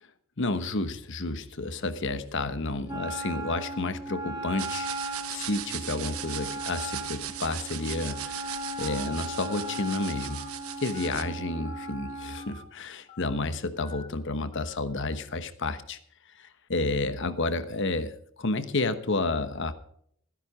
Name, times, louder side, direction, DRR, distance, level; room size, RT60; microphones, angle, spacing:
voice 1, 0.4-10.5 10.8-16.0 16.4-19.7, left 2 dB, 55° left, 11 dB, 1.1 m, -31 dB
Wind instrument woodwind instrument, 2.9-12.5, right 1 dB, 20° right, 1.9 m, -37 dB
sound 1, 4.6-11.2, right 11 dB, 85° right, 1.1 m, -38 dB
Telephone, 8.8-9.1 9.5-9.8 10.2-10.5 10.9-11.2 11.6-11.9 12.4-12.6 13.1-13.4 13.8-14.1 14.5-14.8, left 2 dB, 25° left, 1.7 m, -48 dB
15.0 x 10.0 x 4.9 m, 0.67 s
head